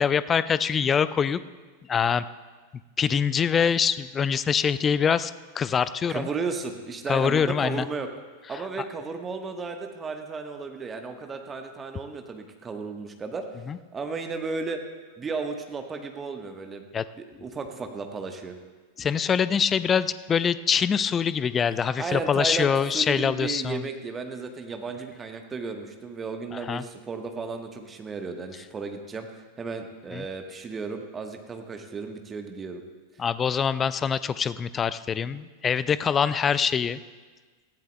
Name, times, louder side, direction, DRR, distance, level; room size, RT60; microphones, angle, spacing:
voice 1, 0.0-1.4 1.9-2.2 3.0-6.3 7.1-7.9 13.7-13.8 16.9-17.0 19.0-23.9 26.5-26.8 30.1-30.2 33.2-37.0, left 7 dB, 20° left, 16 dB, 0.4 m, -24 dB
voice 2, 6.1-8.1 8.5-13.5 13.9-14.8 15.2-16.8 17.2-18.6 22.0-29.3 29.6-32.8, right 4 dB, 20° right, 5 dB, 1.2 m, -34 dB
19.0 x 15.0 x 2.2 m, 1.4 s
figure-of-eight pair, 90°, 0 cm